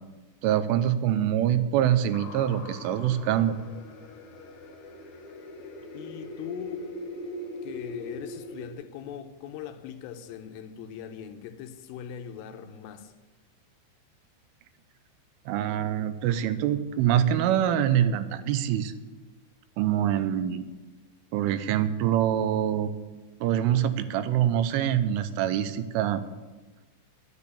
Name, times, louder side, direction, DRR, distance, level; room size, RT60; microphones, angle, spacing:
voice 1, 0.4-3.5 15.5-18.9 19.8-20.6 21.3-22.9 23.4-26.2, right 10 dB, 85° right, 3.2 m, -25 dB
sound 1, 2.1-8.7, left 1 dB, 60° left, 3.0 m, -41 dB
voice 2, 5.9-6.9 7.6-13.1, left 9 dB, 90° left, 3.4 m, -40 dB
12.0 x 9.1 x 8.3 m
omnidirectional pair, 5.6 m